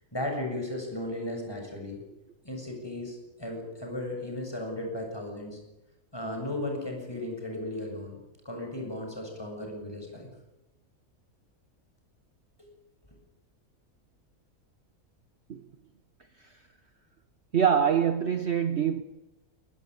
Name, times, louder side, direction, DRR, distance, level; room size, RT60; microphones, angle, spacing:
voice 1, 0.1-2.0 2.4-5.6 6.1-8.2 8.4-10.3 12.6-12.7, left 1 dB, 15° left, 7.3 m, -35 dB
voice 2, 17.5-19.0, right 8 dB, 50° right, 1.2 m, -24 dB
23.5 x 19.5 x 9.6 m
omnidirectional pair, 1.6 m